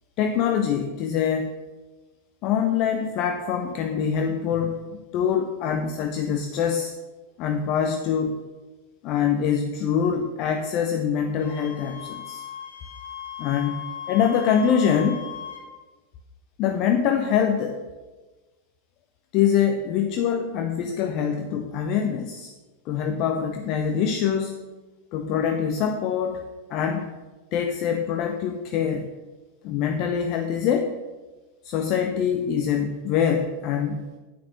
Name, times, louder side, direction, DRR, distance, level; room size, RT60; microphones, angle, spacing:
voice 1, 0.2-1.5 2.4-6.9 7.4-8.4 9.0-12.4 13.4-15.3 16.6-17.8 19.3-22.5 22.9-24.5 25.1-26.4 26.7-27.1 27.5-29.1 29.6-30.9 31.6-34.0, left 7 dB, 40° left, 6 dB, 0.8 m, -24 dB
Wind instrument woodwind instrument, 11.4-15.7, left 9 dB, 70° left, 2.8 m, -37 dB
9.5 x 8.7 x 6.1 m, 1.2 s
figure-of-eight pair, 90°, 0 cm